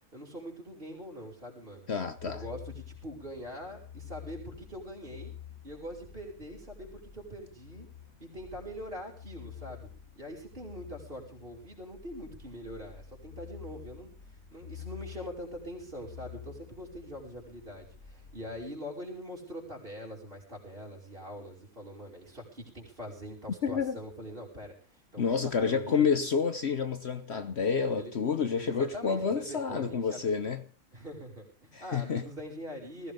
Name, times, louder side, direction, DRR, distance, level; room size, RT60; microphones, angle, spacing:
voice 1, 0.1-1.9 2.2-5.3 5.6-7.9 8.2-9.9 10.2-14.1 14.5-26.0 27.8-28.1 28.5-30.2 30.9-33.1, equal, 40° right, 5.7 m, -43 dB
voice 2, 1.9-2.4 23.6-24.0 25.2-30.6 31.7-32.3, left 6 dB, 55° left, 1.1 m, -29 dB
sound 1, 2.2-18.7, left 9 dB, 80° left, 3.6 m, -49 dB
20.0 x 16.0 x 3.7 m
omnidirectional pair, 1.5 m